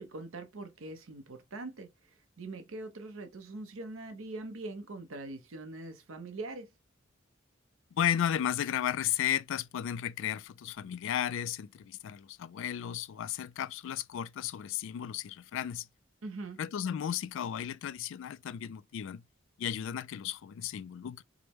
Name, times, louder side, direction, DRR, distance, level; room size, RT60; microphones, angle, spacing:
voice 1, 0.0-6.7 16.2-16.6, right 2 dB, 90° right, 0.7 m, -43 dB
voice 2, 7.9-15.9 16.6-19.2 19.6-21.2, left 10 dB, 70° left, 0.3 m, -34 dB
4.9 x 2.1 x 2.9 m
head